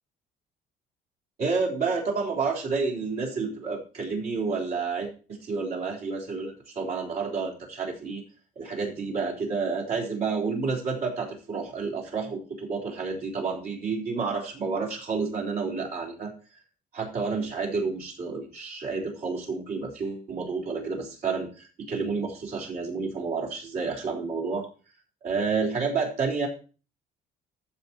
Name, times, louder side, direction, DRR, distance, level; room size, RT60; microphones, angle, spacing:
voice 1, 1.4-8.2 8.6-16.3 16.9-24.7 25.2-26.5, right 4 dB, 65° right, -3 dB, 4.0 m, -30 dB
14.5 x 7.3 x 2.9 m, 0.36 s
cardioid pair, 110°, 17 cm